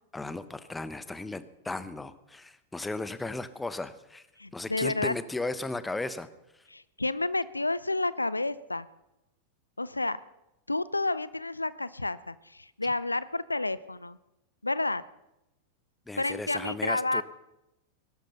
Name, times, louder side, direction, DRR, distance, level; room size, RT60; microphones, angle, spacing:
voice 1, 0.1-4.3 4.5-6.3 16.1-17.2, left 2 dB, 10° left, 13 dB, 1.1 m, -35 dB
voice 2, 4.4-5.1 6.7-8.9 9.8-10.2 10.7-14.2 14.6-15.0 16.2-17.2, left 2 dB, 85° left, 18 dB, 0.5 m, -30 dB
20.5 x 12.0 x 5.6 m, 0.94 s
figure-of-eight pair, 90°, 0 cm